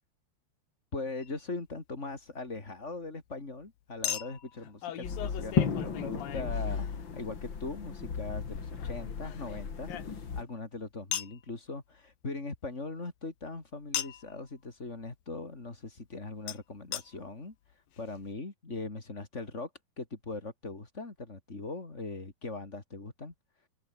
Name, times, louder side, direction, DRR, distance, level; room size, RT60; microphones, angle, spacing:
voice 1, 0.9-19.7 20.0-23.7, left 3 dB, 20° left, 3.1 m, -40 dB
Chink clink, 1.2-1.4 4.0-7.2 8.8-10.5 11.1-11.4 13.9-14.3 16.5-16.6 16.9-17.0 17.7-17.8 18.0-18.1, left 11 dB, 70° left, 3.4 m, -38 dB
sound 1, 5.0-10.4, left 6 dB, 35° left, 2.6 m, -34 dB
open air
omnidirectional pair, 4.4 m